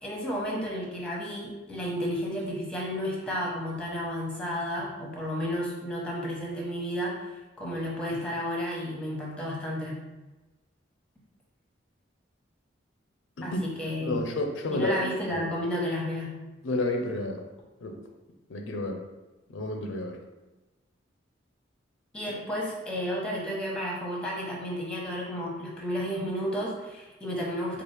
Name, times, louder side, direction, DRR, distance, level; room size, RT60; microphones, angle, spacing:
voice 1, 0.0-7.3 7.6-10.1 13.4-14.3 14.7-16.4 22.1-27.8, equal, 5° left, -3 dB, 0.9 m, -32 dB
voice 2, 14.0-15.5 16.6-17.5 17.8-18.0 18.5-19.0 19.5-20.2, left 1 dB, 85° left, 4 dB, 0.5 m, -31 dB
4.6 x 2.4 x 3.2 m, 1.1 s
head